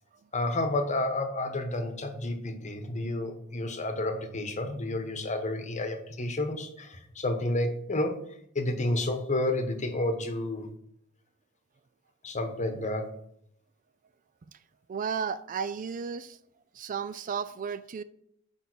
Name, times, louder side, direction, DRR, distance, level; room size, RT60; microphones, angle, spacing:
voice 1, 0.3-8.2 8.5-10.7 12.2-13.2, left 1 dB, 35° left, 1.0 m, -30 dB
voice 2, 14.9-16.4 16.7-18.0, right 6 dB, 40° right, 0.3 m, -33 dB
7.1 x 5.2 x 6.1 m
head